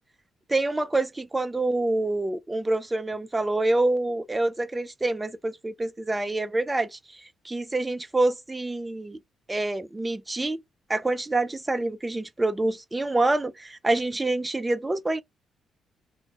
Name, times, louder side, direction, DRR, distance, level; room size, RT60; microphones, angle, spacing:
voice 1, 0.5-9.2 9.5-10.6 10.9-15.2, right 2 dB, 15° right, 0.3 m, -26 dB
2.2 x 2.1 x 2.7 m
cardioid pair, 90°, 0 cm